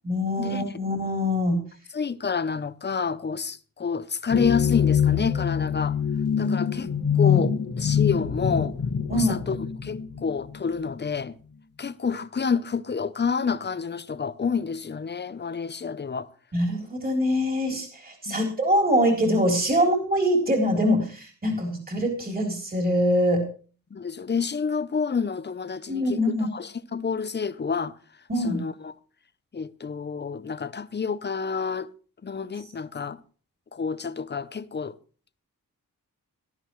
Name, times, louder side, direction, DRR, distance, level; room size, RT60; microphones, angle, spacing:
voice 1, 0.0-1.6 7.2-7.4 9.1-9.3 16.5-23.4 25.9-26.5 28.3-28.6, equal, 25° right, 3.6 m, -24 dB
voice 2, 1.9-6.0 6.4-6.9 7.2-8.7 9.1-11.4 11.8-16.3 18.3-18.5 23.9-27.9 28.4-28.9 29.5-31.9 32.2-33.2 33.7-34.9, left 5 dB, 30° left, 0.6 m, -29 dB
sound 1, 4.3-10.9, left 7 dB, 60° left, 1.5 m, -24 dB
18.0 x 12.0 x 3.1 m
wide cardioid pair, 115°, 34 cm